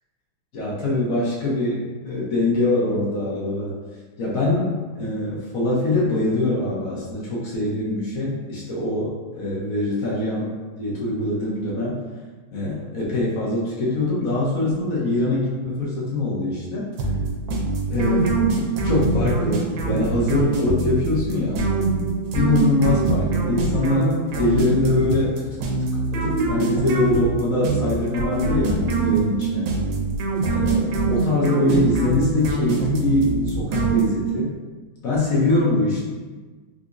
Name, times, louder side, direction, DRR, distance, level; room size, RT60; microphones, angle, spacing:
voice 1, 0.5-3.8 4.2-10.5 10.8-12.0 12.5-16.9 17.9-18.5 18.8-21.6 22.3-25.3 25.8-28.8 29.0-29.7 30.5-34.5 35.0-36.0, left 2 dB, 65° left, -6 dB, 0.9 m, -23 dB
sound 1, 17.0-34.5, right 3 dB, 75° right, 1.2 m, -23 dB
3.8 x 2.7 x 2.4 m, 1.3 s
omnidirectional pair, 2.2 m